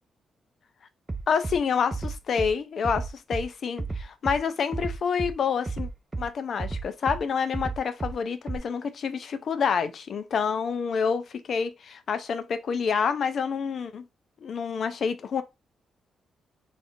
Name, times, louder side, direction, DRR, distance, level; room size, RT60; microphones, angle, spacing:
Bass drum, 1.1-1.6 1.9-2.5 2.8-3.5 3.8-4.4 4.7-5.3 5.7-6.3 6.6-7.2 7.5-8.1 8.5-8.6, right 3 dB, 25° right, 0.4 m, -32 dB
voice 1, 1.3-5.9 6.2-14.0 14.4-15.4, left 6 dB, 60° left, 0.4 m, -28 dB
3.4 x 2.5 x 2.6 m
supercardioid pair, 60°, 0 cm